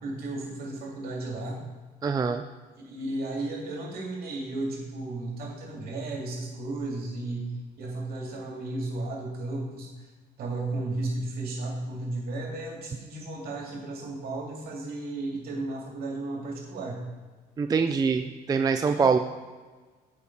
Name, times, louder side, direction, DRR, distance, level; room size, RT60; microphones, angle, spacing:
voice 1, 0.0-1.6 2.8-9.9 10.4-17.0, right 2 dB, 65° right, -1 dB, 2.7 m, -34 dB
voice 2, 2.0-2.4 17.6-19.2, right 5 dB, 20° right, 7 dB, 0.4 m, -24 dB
8.5 x 5.3 x 4.8 m, 1.3 s
cardioid pair, 110°, 17 cm